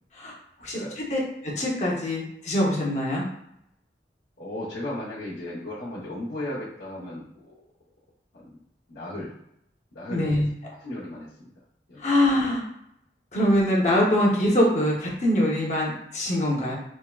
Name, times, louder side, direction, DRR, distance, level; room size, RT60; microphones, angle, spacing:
voice 1, 0.6-1.2 1.6-3.2 10.1-10.5 12.0-12.6 13.3-16.7, left 1 dB, 40° left, -3 dB, 0.7 m, -23 dB
voice 2, 4.4-7.6 8.3-8.6 8.9-9.3 9.9-10.4 10.8-11.5 11.9-12.1, left 1 dB, 85° left, -10 dB, 0.8 m, -36 dB
3.4 x 2.1 x 2.3 m, 0.76 s
head